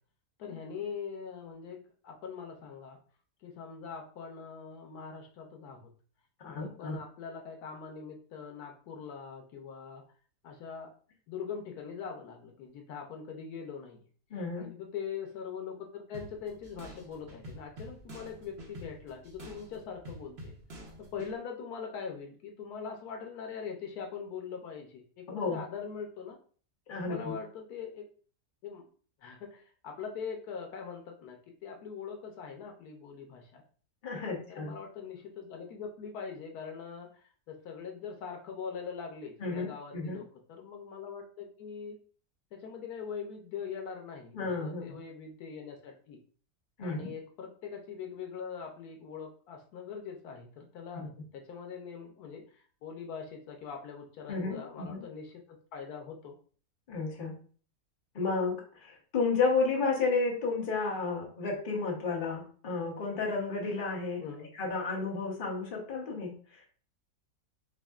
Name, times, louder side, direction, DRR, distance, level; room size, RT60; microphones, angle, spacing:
voice 1, 0.4-3.0 3.4-5.9 6.4-10.0 10.4-10.9 11.3-14.0 14.6-20.5 21.0-26.4 27.0-28.1 28.6-28.9 29.2-33.6 34.5-42.0 42.5-46.2 46.8-56.4 64.2-64.5, left 6 dB, 85° left, 2 dB, 1.2 m, -42 dB
voice 2, 6.5-7.0 14.3-14.7 25.3-25.6 26.9-27.3 34.0-34.7 39.4-40.2 44.3-45.0 46.8-47.1 50.9-51.1 54.3-55.0 56.9-57.4 58.1-64.2 64.5-66.6, left 4 dB, 40° left, -1 dB, 1.0 m, -32 dB
sound 1, 16.1-21.3, equal, 50° right, 1.0 m, -48 dB
6.1 x 2.1 x 2.3 m, 0.43 s
omnidirectional pair, 1.6 m